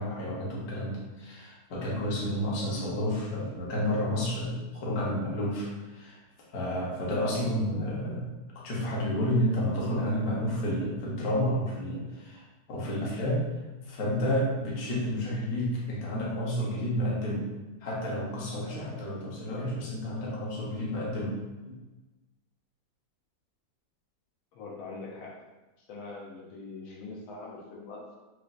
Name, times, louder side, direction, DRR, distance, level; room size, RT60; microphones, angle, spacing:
voice 1, 0.0-6.2 6.5-8.3 8.5-13.4 13.8-17.5 17.8-21.4 21.6-21.7, equal, 55° left, -5 dB, 1.4 m, -30 dB
voice 2, 24.5-25.4 25.8-28.2, left 3 dB, 85° left, -3 dB, 1.6 m, -43 dB
6.3 x 2.6 x 2.5 m, 1.1 s
omnidirectional pair, 2.2 m